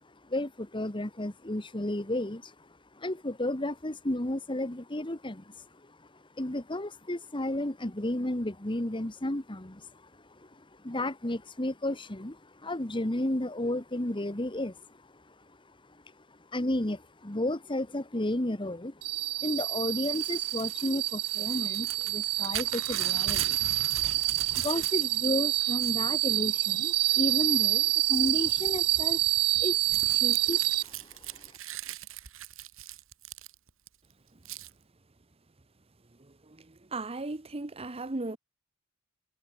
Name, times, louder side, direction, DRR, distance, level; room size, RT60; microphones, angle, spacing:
voice 1, 0.3-2.5 3.0-5.5 6.4-9.9 10.8-14.7 16.5-18.9 19.4-23.6 24.5-29.2 29.6-30.6, left 1 dB, 20° left, 1.5 m, -32 dB
sound 1, 19.0-30.8, right 17 dB, 90° right, 0.5 m, -27 dB
Crumpling crinkling / Tearing, 20.0-25.3 25.6-26.4 26.9-27.3 27.6-33.9 34.5-34.7, right 10 dB, 60° right, 2.1 m, -41 dB
voice 2, 36.5-38.4, right 2 dB, 25° right, 0.9 m, -36 dB
head